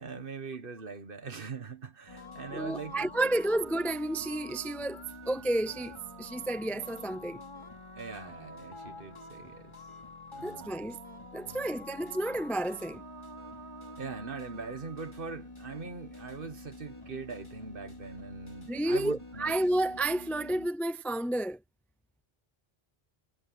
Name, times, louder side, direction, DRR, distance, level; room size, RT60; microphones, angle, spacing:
voice 1, 0.0-3.3 7.9-9.7 10.3-10.8 11.4-11.7 14.0-19.5, right 5 dB, 55° right, 1.6 m, -42 dB
sound 1, 2.1-20.7, left 1 dB, 25° left, 3.7 m, -47 dB
voice 2, 2.5-7.4 10.4-11.0 11.3-13.0 18.7-21.6, right 1 dB, ahead, 0.4 m, -31 dB
omnidirectional pair, 1.1 m